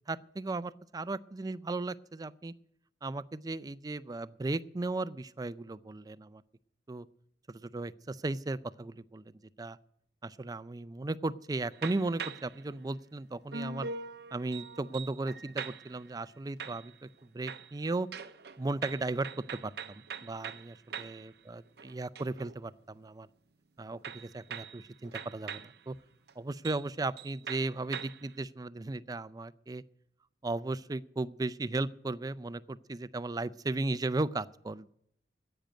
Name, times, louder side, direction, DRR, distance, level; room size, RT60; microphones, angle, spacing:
voice 1, 0.1-2.5 3.0-6.4 6.9-7.1 7.5-9.2 9.6-9.8 10.2-13.9 14.3-18.1 18.6-19.3 19.6-23.3 23.8-26.0 26.4-29.8 30.4-34.9, right 2 dB, 20° right, 16 dB, 0.4 m, -36 dB
sound 1, 11.7-12.6 13.5-16.1 16.6-17.2 17.5-21.3 21.7-22.6 24.0-25.8 26.3-26.4 26.7-26.9 27.2-28.3, right 5 dB, 60° right, 0.6 m, -43 dB
10.0 x 8.9 x 9.2 m, 0.72 s
head